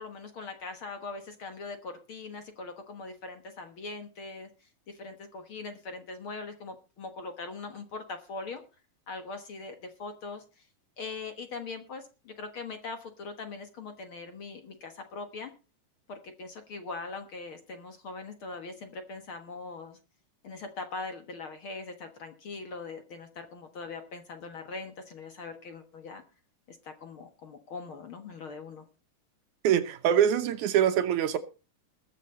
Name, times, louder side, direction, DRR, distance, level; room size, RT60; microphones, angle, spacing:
voice 1, 0.0-4.5 4.9-8.6 9.1-10.4 11.0-15.5 16.1-20.0 20.4-26.2 26.7-28.8, left 3 dB, 50° left, 1.8 m, -41 dB
voice 2, 29.6-31.4, right 9 dB, 70° right, 2.3 m, -24 dB
20.5 x 7.5 x 4.2 m
omnidirectional pair, 3.7 m